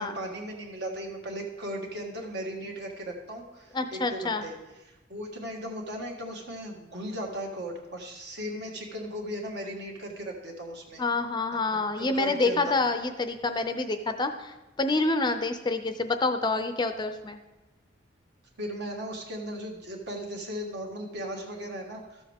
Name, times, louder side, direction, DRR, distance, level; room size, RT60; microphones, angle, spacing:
voice 1, 0.0-4.5 4.8-11.0 12.0-12.7 18.6-22.2, equal, 60° right, 1 dB, 1.6 m, -37 dB
voice 2, 3.7-4.4 11.0-17.4, left 3 dB, 25° left, 8 dB, 0.5 m, -27 dB
13.0 x 7.1 x 3.5 m, 1.0 s
head